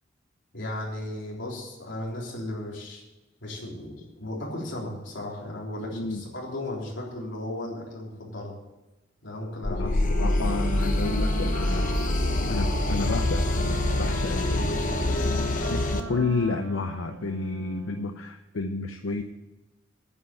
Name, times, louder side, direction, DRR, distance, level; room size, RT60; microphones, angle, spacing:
voice 1, 0.5-3.0 3.4-8.5 9.2-11.1 16.1-16.2, left 1 dB, 65° left, -3 dB, 3.7 m, -36 dB
sound 1, 9.6-16.0, left 1 dB, 45° left, 1.0 m, -25 dB
voice 2, 9.7-11.9 12.5-14.8 15.7-19.2, left 3 dB, 90° left, 6 dB, 0.7 m, -31 dB
Wind instrument woodwind instrument, 9.9-18.1, right 4 dB, 70° right, 0.9 m, -39 dB
9.8 x 7.9 x 8.6 m, 1.0 s
head